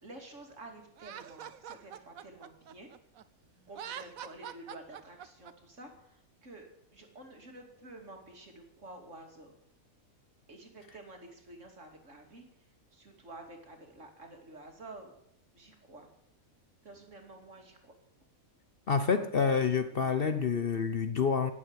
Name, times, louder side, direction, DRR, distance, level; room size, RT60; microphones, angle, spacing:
voice 1, 0.0-2.9 3.7-9.5 10.5-12.4 12.9-15.1 15.5-16.1 16.8-18.0, right 2 dB, 60° right, 2.9 m, -50 dB
Laughter, 1.0-3.2 3.7-5.5, right 9 dB, 75° right, 1.2 m, -44 dB
voice 2, 18.9-21.5, left 5 dB, 50° left, 0.9 m, -28 dB
17.5 x 7.5 x 8.0 m
omnidirectional pair, 1.5 m